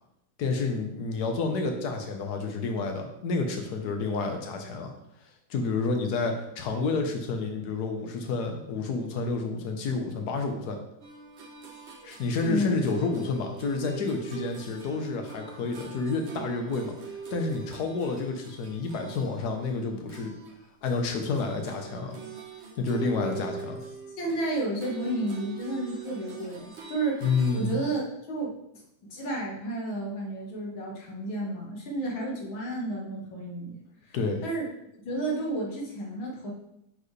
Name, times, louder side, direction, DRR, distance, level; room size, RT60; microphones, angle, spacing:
voice 1, 0.4-4.9 5.5-10.8 12.0-16.9 17.3-20.3 20.8-22.2 22.8-23.8 27.2-27.8 34.1-34.4, left 3 dB, 60° left, 4 dB, 1.4 m, -29 dB
sound 1, 11.0-20.6 20.9-27.9, right 5 dB, 45° right, 1.0 m, -43 dB
voice 2, 12.4-12.8 24.2-28.5 29.1-33.8 34.0-34.2 34.4-34.7 35.0-36.5, right 1 dB, 80° left, -2 dB, 2.3 m, -31 dB
9.8 x 4.6 x 3.3 m, 0.81 s
omnidirectional pair, 2.2 m